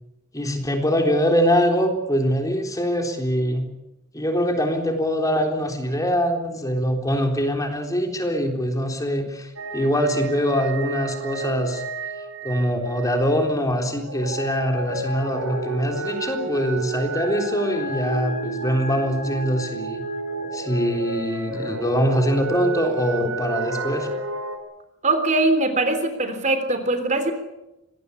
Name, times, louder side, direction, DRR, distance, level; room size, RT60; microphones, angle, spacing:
voice 1, 0.3-3.7 4.1-11.8 12.4-20.0 20.5-24.1, equal, 15° left, 4 dB, 3.8 m, -23 dB
sound 1, 9.6-13.3 14.0-24.6, right 3 dB, 70° right, 6.5 m, -31 dB
voice 2, 25.0-27.3, right 2 dB, 35° right, 9 dB, 3.4 m, -21 dB
26.0 x 19.5 x 8.5 m, 0.92 s
head